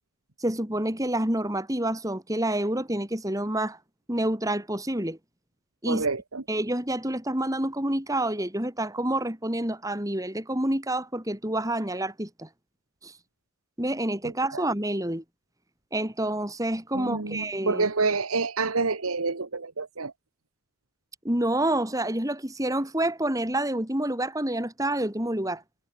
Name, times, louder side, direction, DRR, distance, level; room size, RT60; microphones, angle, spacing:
voice 1, 0.4-3.8 4.1-5.2 5.8-6.1 6.5-12.5 13.0-13.1 13.8-15.2 15.9-17.9 21.2-25.6, right 1 dB, 15° right, 3.9 m, -28 dB
voice 2, 5.9-6.4 14.2-14.6 16.9-20.1, right 4 dB, 85° right, 1.6 m, -28 dB
head